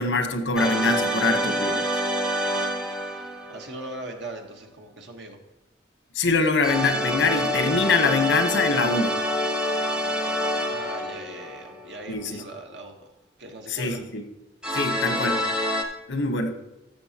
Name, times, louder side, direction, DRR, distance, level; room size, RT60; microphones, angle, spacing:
voice 1, 0.0-1.9 6.1-9.2 12.1-12.4 13.7-14.2 14.7-15.4 16.1-16.5, left 3 dB, 90° left, 7 dB, 1.0 m, -24 dB
sound 1, 0.5-3.9 6.6-12.0 14.6-15.8, equal, 5° right, 0.7 m, -27 dB
voice 2, 3.5-5.4 10.7-13.1 13.4-14.0, right 2 dB, 80° right, 3 dB, 1.2 m, -39 dB
13.0 x 6.8 x 2.9 m, 0.98 s
head